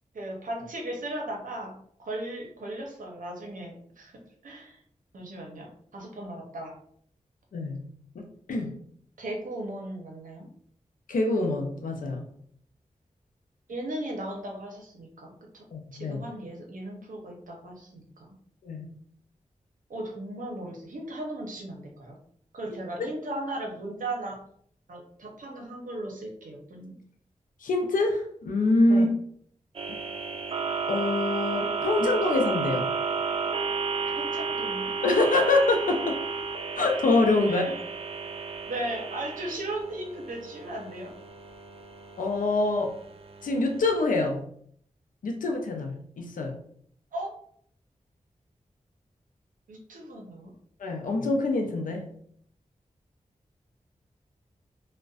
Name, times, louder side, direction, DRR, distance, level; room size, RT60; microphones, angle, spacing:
voice 1, 0.1-1.7 2.0-4.8 5.1-5.7 5.9-6.7 9.2-10.5 13.7-15.6 15.9-18.3 19.9-22.2 22.5-24.4 24.9-26.9 28.9-29.1 34.1-34.9 37.4-37.8 38.7-41.1 47.1-47.3 49.7-50.5, right 1 dB, 80° right, 0 dB, 0.7 m, -37 dB
voice 2, 7.5-7.8 8.2-8.8 11.1-12.3 15.7-16.2 18.6-18.9 23.0-23.1 27.6-29.1 30.9-32.9 35.0-36.2 36.8-37.6 42.2-42.9 43.4-44.5 45.2-46.6 50.8-52.0, left 2 dB, 80° left, 3 dB, 0.5 m, -25 dB
sound 1, 29.7-44.0, right 5 dB, 45° right, 0.4 m, -33 dB
2.4 x 2.1 x 2.3 m, 0.63 s
cardioid pair, 45°, 14 cm